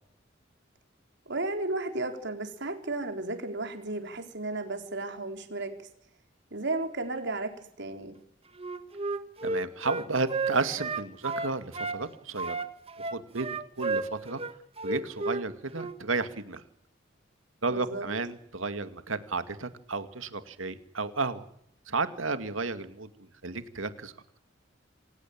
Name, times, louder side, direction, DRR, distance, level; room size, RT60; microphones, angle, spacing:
voice 1, 1.3-5.7 6.5-8.2 17.7-18.1, right 2 dB, 60° right, 5 dB, 4.3 m, -34 dB
Wind instrument woodwind instrument, 8.6-12.0 12.4-15.4 15.7-16.0, right 3 dB, 30° right, 1.6 m, -32 dB
voice 2, 9.4-12.6 13.1-14.4 14.8-16.6 17.6-21.5 21.9-24.1, right 3 dB, 85° right, 10 dB, 2.3 m, -33 dB
28.0 x 17.5 x 8.8 m, 0.70 s
head